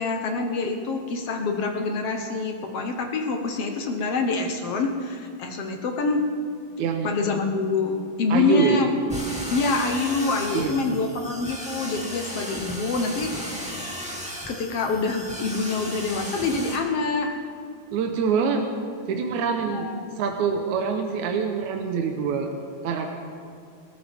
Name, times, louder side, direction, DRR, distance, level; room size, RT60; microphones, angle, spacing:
voice 1, 0.0-6.2 7.0-8.9 9.5-13.3 14.5-17.4 19.7-20.1, left 3 dB, 60° left, 3 dB, 1.8 m, -26 dB
voice 2, 8.3-8.8 10.5-11.1 12.8-13.1 17.9-18.7 19.1-19.9 20.2-22.5 22.8-23.1, right 6 dB, 75° right, 3 dB, 2.3 m, -25 dB
sound 1, 9.1-16.8, equal, 5° right, 1.9 m, -35 dB
26.5 x 13.5 x 3.6 m, 2.3 s
omnidirectional pair, 3.5 m